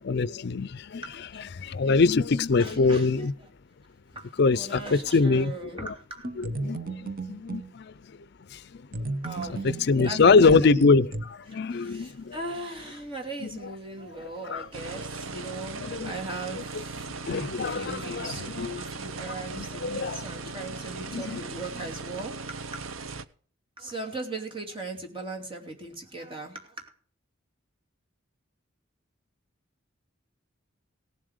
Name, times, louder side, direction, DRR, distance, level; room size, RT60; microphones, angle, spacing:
voice 1, 0.0-1.0 1.5-3.3 4.4-5.5 6.4-7.9 8.5-8.6 8.9-9.2 9.6-12.4 13.4-13.5 14.5-14.7 15.8-16.1 17.3-18.7 19.3-20.3 21.1-21.4, left 4 dB, 55° left, 0.5 m, -24 dB
voice 2, 1.0-1.4 2.6-3.5 4.1-6.3 9.2-10.7 11.5-17.1 17.5-22.3 23.8-26.6, right 2 dB, 25° right, 2.8 m, -39 dB
sound 1, 6.2-7.7 8.9-11.2, right 2 dB, 45° right, 0.9 m, -34 dB
sound 2, 14.7-23.2, right 4 dB, 85° right, 0.8 m, -38 dB
17.5 x 7.5 x 5.0 m
head